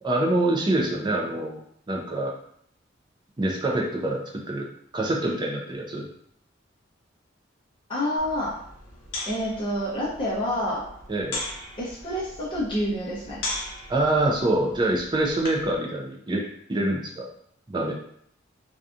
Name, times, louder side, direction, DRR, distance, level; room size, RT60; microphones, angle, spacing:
voice 1, 0.0-1.6 1.9-2.3 3.4-6.1 11.1-11.4 13.9-17.3 17.7-17.9, right 1 dB, 25° right, -1 dB, 0.4 m, -25 dB
voice 2, 7.9-8.5 9.2-10.9 11.8-13.4, equal, 25° left, -9 dB, 0.7 m, -28 dB
sound 1, 8.2-15.8, left 2 dB, 75° left, 0.6 m, -38 dB
2.6 x 2.3 x 2.4 m, 0.66 s
head